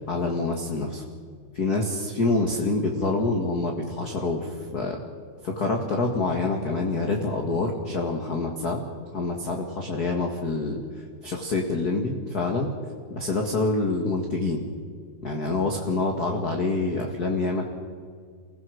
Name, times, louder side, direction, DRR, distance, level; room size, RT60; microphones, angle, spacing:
voice 1, 0.1-1.0 1.5-5.0 5.4-8.8 9.1-10.8 11.2-12.7 13.1-14.6 15.2-17.7, left 3 dB, 35° left, 1 dB, 1.9 m, -26 dB
29.5 x 16.0 x 6.4 m, 2.1 s
omnidirectional pair, 3.5 m